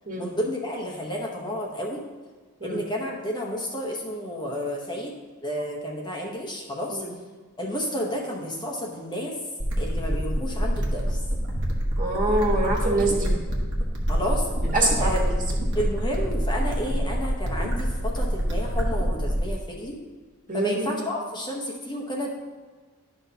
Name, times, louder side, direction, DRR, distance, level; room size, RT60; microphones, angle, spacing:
voice 1, 0.2-2.0 2.6-5.1 5.4-7.0 7.6-9.3 9.8-11.2 14.1-14.5 15.0-15.3 15.7-20.0 20.5-22.4, equal, 20° left, -2 dB, 0.9 m, -31 dB
sound 1, 9.6-19.6, equal, 55° right, 1.2 m, -26 dB
voice 2, 12.0-13.3 14.7-15.1 20.5-20.9, right 2 dB, 40° right, -2 dB, 1.6 m, -24 dB
11.0 x 5.9 x 2.8 m, 1.4 s
head